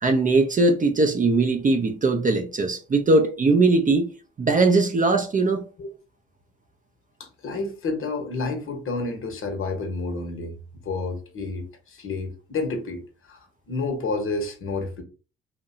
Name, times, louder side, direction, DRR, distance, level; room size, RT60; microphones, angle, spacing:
voice 1, 0.0-4.1 4.4-5.6, right 3 dB, 25° right, 0.5 m, -20 dB
voice 2, 7.2-15.0, left 3 dB, 45° left, 0.8 m, -30 dB
2.6 x 2.1 x 2.7 m
hypercardioid pair, 55°, 30 cm